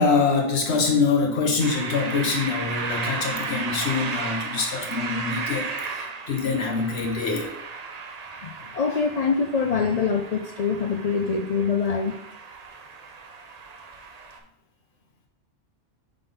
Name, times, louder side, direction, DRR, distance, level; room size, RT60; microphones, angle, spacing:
voice 1, 0.0-7.5, left 4 dB, 70° left, 2 dB, 1.4 m, -24 dB
sound 1, 1.6-14.4, right 4 dB, 45° right, 0.7 m, -34 dB
voice 2, 8.4-12.1, left 5 dB, 55° left, 5 dB, 0.4 m, -24 dB
5.4 x 3.9 x 5.3 m, 0.75 s
omnidirectional pair, 1.2 m